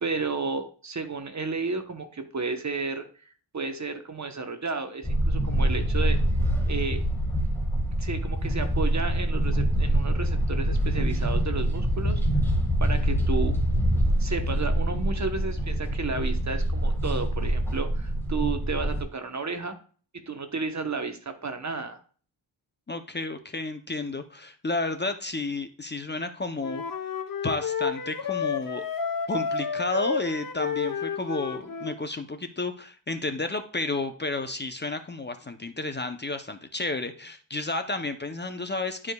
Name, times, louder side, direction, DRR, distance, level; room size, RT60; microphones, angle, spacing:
voice 1, 0.0-6.2 6.7-7.0 8.0-12.2 12.8-13.5 14.2-19.7 20.3-22.0, right 4 dB, 35° right, 6 dB, 1.0 m, -32 dB
sound 1, 5.0-19.0, right 1 dB, 5° left, 1.6 m, -25 dB
voice 2, 22.9-26.8 27.4-28.8 29.3-39.1, left 2 dB, 20° left, 8 dB, 0.6 m, -31 dB
Wind instrument woodwind instrument, 26.6-32.0, left 6 dB, 40° left, 1.0 m, -30 dB
12.0 x 4.9 x 2.3 m, 0.41 s
wide cardioid pair, 100°, 50 cm